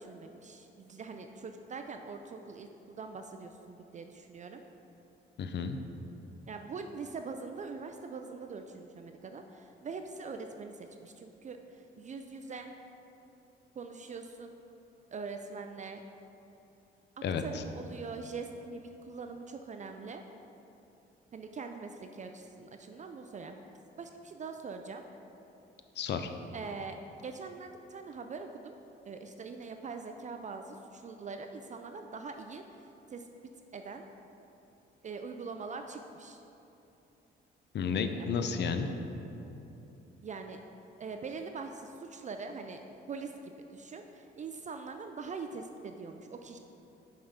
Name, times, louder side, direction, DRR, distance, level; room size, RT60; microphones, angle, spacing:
voice 1, 0.0-4.6 6.5-12.7 13.8-14.5 15.1-16.0 17.2-20.2 21.3-23.6 24.0-25.0 26.5-27.0 27.2-28.8 29.0-33.3 33.7-34.1 35.0-36.4 38.2-38.5 40.2-40.6 41.0-46.6, right 4 dB, 40° right, 5 dB, 0.4 m, -43 dB
voice 2, 5.4-5.8 17.2-17.4 26.0-26.3 37.7-38.9, left 6 dB, 60° left, 8 dB, 0.5 m, -32 dB
5.6 x 5.5 x 5.1 m, 3.0 s
cardioid pair, 90°, 20 cm